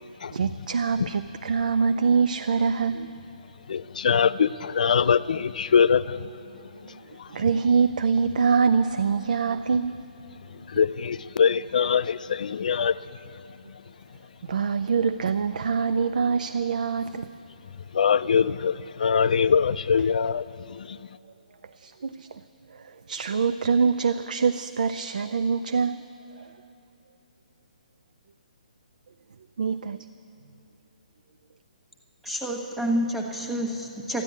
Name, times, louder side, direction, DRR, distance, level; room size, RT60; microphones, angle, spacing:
voice 1, 0.3-3.1 7.3-10.0 14.4-17.3 21.7-22.4 22.7-26.0 26.4-26.5 29.6-30.1, right 5 dB, 70° right, 10 dB, 0.4 m, -24 dB
voice 2, 3.7-6.3 7.1-7.3 10.5-13.0 17.9-21.0, left 6 dB, 65° left, 17 dB, 0.4 m, -23 dB
voice 3, 32.2-34.2, equal, ahead, 1 dB, 1.3 m, -28 dB
13.5 x 9.9 x 9.5 m, 2.8 s
hypercardioid pair, 150°, 5 cm